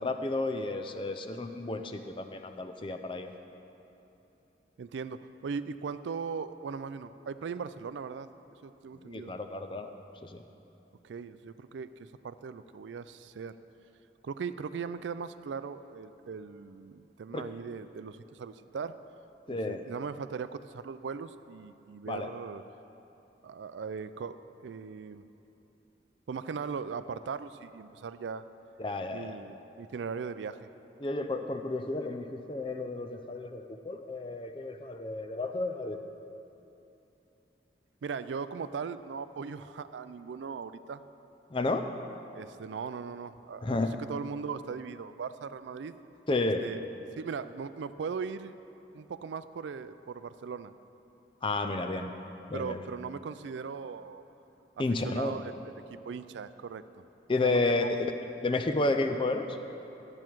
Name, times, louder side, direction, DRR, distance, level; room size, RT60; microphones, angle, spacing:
voice 1, 0.0-3.3 8.9-9.9 10.2-10.4 17.3-17.4 19.5-19.8 22.1-22.3 28.8-29.4 31.0-36.0 41.5-41.9 43.6-43.9 46.3-46.6 51.4-52.1 52.5-52.8 54.8-55.4 57.3-58.1 58.4-59.6, left 2 dB, 30° left, 6 dB, 0.5 m, -31 dB
voice 2, 4.8-8.3 8.6-9.3 11.0-13.5 14.2-19.0 19.5-22.6 23.4-24.4 24.6-25.2 26.3-28.5 29.1-30.7 38.0-41.0 42.3-43.7 44.1-45.9 46.6-46.8 47.2-48.5 48.9-50.7 52.5-54.2 54.8-56.8 57.4-57.9, right 5 dB, 85° right, 13 dB, 0.4 m, -39 dB
12.5 x 8.7 x 4.6 m, 3.0 s
head